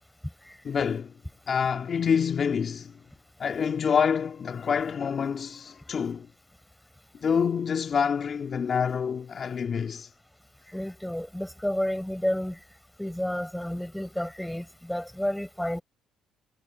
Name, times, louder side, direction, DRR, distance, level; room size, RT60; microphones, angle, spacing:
voice 1, 0.6-1.1 1.5-3.0 3.4-6.3 7.2-10.1, left 6 dB, 45° left, 2.7 m, -27 dB
voice 2, 10.7-12.6 13.0-15.8, left 1 dB, 5° left, 5.4 m, -31 dB
supercardioid pair, 85°, 0 cm